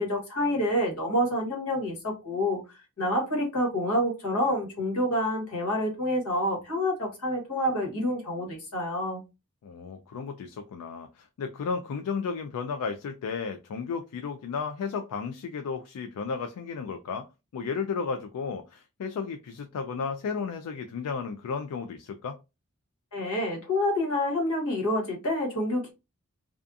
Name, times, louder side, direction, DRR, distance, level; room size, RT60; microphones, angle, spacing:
voice 1, 0.0-2.6 3.0-9.2 23.1-25.9, left 1 dB, 70° left, 1.3 m, -28 dB
voice 2, 9.6-17.3 17.5-22.4, left 5 dB, 90° left, 0.3 m, -33 dB
2.4 x 2.3 x 2.5 m
head